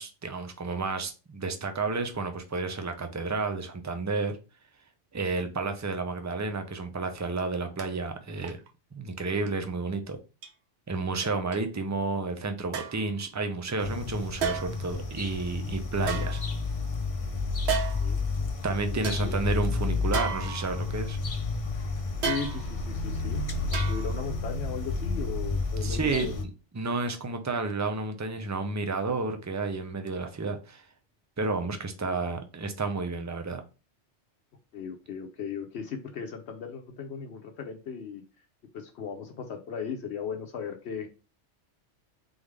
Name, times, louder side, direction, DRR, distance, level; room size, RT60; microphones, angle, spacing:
voice 1, 0.0-4.4 5.1-8.6 8.9-10.2 10.9-16.4 18.6-21.2 25.8-26.3 26.7-30.9 31.4-33.6, right 3 dB, 30° right, 0.3 m, -31 dB
sound 1, 7.8-7.9 8.4-8.7 9.4-9.5 10.4-10.5 11.5-11.6 12.7-13.1 14.4-14.9 16.0-16.9 17.7-18.2 18.6-18.7 19.0-19.2 20.1-21.0 22.2-22.9 23.7-24.3 24.6-24.7, right 6 dB, 65° right, 1.0 m, -33 dB
sound 2, 13.8-26.4, left 3 dB, 35° left, 0.6 m, -31 dB
voice 2, 18.9-19.4 22.2-26.4 32.0-32.2 34.7-38.2 38.7-41.1, left 6 dB, 70° left, 0.9 m, -37 dB
3.8 x 3.5 x 3.2 m
omnidirectional pair, 1.2 m